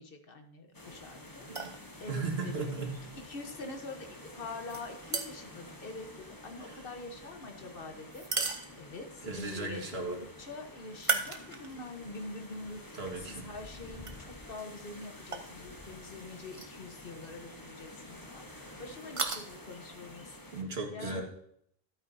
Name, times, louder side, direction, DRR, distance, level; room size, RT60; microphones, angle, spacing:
voice 1, 0.0-1.5 2.0-2.7 3.3-8.3 8.8-20.4 20.9-21.2, left 3 dB, 60° left, 5 dB, 1.3 m, -45 dB
sound 1, 0.7-20.6, left 1 dB, 20° left, 1.1 m, -50 dB
sound 2, 1.4-1.8 4.7-5.6 8.1-9.1 10.9-11.9 12.4-12.5 14.0-14.1 15.3-15.5 16.5-16.7 17.0-17.1 19.0-19.4, right 4 dB, 35° right, 0.9 m, -35 dB
voice 2, 2.1-2.9 6.6-6.8 9.2-10.2 12.9-13.5 20.5-21.2, right 3 dB, 80° right, 1 dB, 2.0 m, -36 dB
12.5 x 8.7 x 2.7 m, 0.69 s
omnidirectional pair, 1.1 m